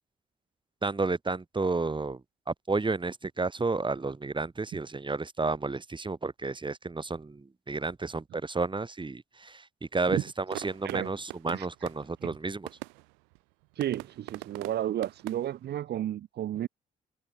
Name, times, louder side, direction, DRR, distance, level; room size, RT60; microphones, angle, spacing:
voice 1, 0.8-2.2 2.5-9.7 9.9-12.7, right 3 dB, 25° right, 3.5 m, -31 dB
sound 1, 10.0-15.8, right 37 dB, 80° right, 1.8 m, -45 dB
voice 2, 13.7-16.7, right 12 dB, 60° right, 1.7 m, -32 dB
hypercardioid pair, 45°, 19 cm